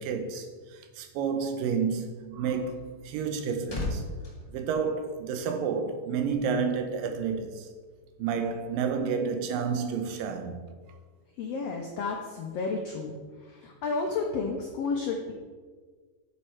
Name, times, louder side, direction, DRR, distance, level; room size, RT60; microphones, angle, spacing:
voice 1, 0.0-4.1 4.5-7.7 8.2-10.7, right 6 dB, 85° right, 2.5 m, -30 dB
sound 1, 2.9-5.6 5.9-6.2, left 2 dB, 25° left, 1.6 m, -38 dB
voice 2, 11.4-13.1 13.4-15.3, left 4 dB, 85° left, 1.4 m, -31 dB
9.3 x 6.6 x 4.5 m
omnidirectional pair, 3.9 m